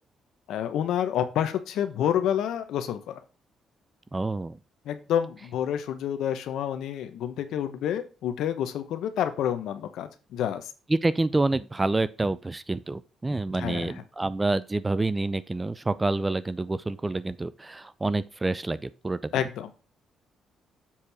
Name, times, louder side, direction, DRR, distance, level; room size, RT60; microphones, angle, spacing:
voice 1, 0.5-3.2 4.8-10.7 13.5-13.9 19.3-19.7, left 10 dB, 80° left, 0.9 m, -28 dB
voice 2, 4.1-4.6 10.9-19.3, right 2 dB, 20° right, 0.5 m, -27 dB
7.4 x 4.4 x 4.8 m
cardioid pair, 90°, 0 cm